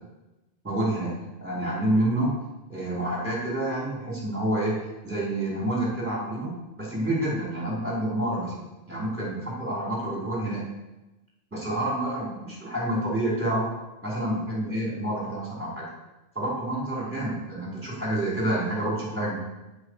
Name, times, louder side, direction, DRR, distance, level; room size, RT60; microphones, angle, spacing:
voice 1, 0.6-2.3 2.7-8.5 8.9-10.6 11.5-13.7 14.0-15.9 16.3-19.4, right 1 dB, 10° right, -6 dB, 4.8 m, -28 dB
18.0 x 7.6 x 5.0 m, 1.0 s
omnidirectional pair, 1.2 m